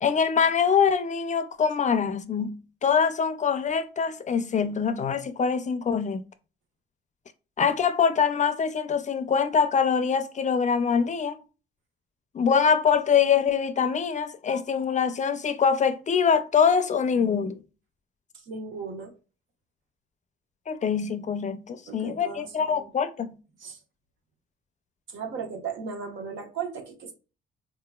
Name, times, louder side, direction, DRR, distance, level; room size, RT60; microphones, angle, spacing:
voice 1, 0.0-6.2 7.6-11.4 12.3-17.6 20.7-23.3, left 6 dB, 40° left, 0.5 m, -24 dB
voice 2, 18.5-19.1 21.9-22.9 23.6-23.8 25.1-27.1, right 6 dB, 75° right, 1.2 m, -36 dB
3.9 x 2.8 x 2.3 m
cardioid pair, 90°, 20 cm